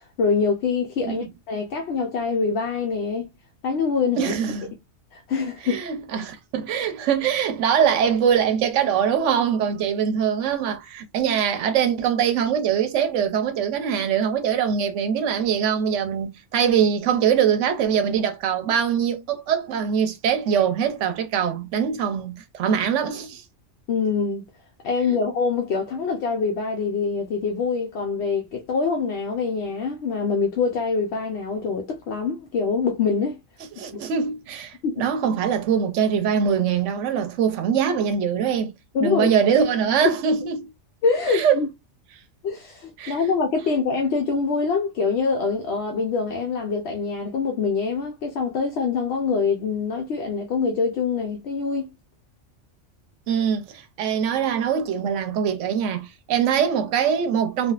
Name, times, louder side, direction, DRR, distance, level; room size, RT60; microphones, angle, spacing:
voice 1, 0.0-3.3 3.6-4.3 5.1-5.8 23.9-24.5 24.8-33.4 33.9-34.0 34.8-35.1 38.9-39.3 41.0-41.7 42.4-51.9, left 5 dB, 65° left, 0.8 m, -24 dB
voice 2, 4.2-4.7 5.6-23.4 25.1-25.2 33.8-38.7 39.0-40.7 41.3-41.6 43.0-43.1 53.3-57.7, right 7 dB, 80° right, 1.0 m, -23 dB
3.4 x 2.3 x 2.3 m
omnidirectional pair, 1.3 m